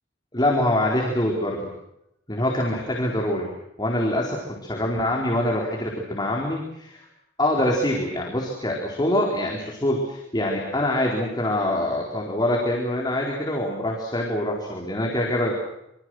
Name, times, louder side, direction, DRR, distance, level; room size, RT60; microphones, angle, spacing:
voice 1, 0.3-1.7 2.3-3.5 3.8-7.1 7.4-15.6, left 1 dB, 25° left, -1 dB, 4.4 m, -24 dB
27.5 x 26.0 x 6.5 m, 0.84 s
head